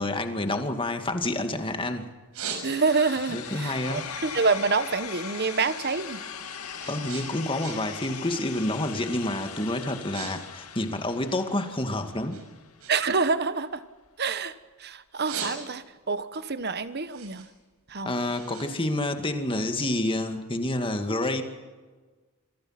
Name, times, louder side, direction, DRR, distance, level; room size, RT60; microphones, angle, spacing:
voice 1, 0.0-2.1 3.3-4.1 6.9-12.4 18.1-21.4, left 1 dB, 25° left, 6 dB, 2.2 m, -28 dB
sound 1, 2.1-3.1 3.5-5.8 6.0-8.1 8.4-8.7 9.3-9.5 9.8-10.3 10.6-11.8 12.3-14.6 15.0-16.0 16.5-19.6, right 6 dB, 90° right, 6.5 m, -41 dB
sound 2, 2.6-12.6, left 7 dB, 90° left, 2.3 m, -40 dB
voice 2, 2.6-6.2 12.9-13.8 14.2-14.5 14.8-17.5 17.9-18.1, right 4 dB, 50° right, 13 dB, 1.2 m, -27 dB
27.5 x 23.5 x 5.9 m, 1.3 s
head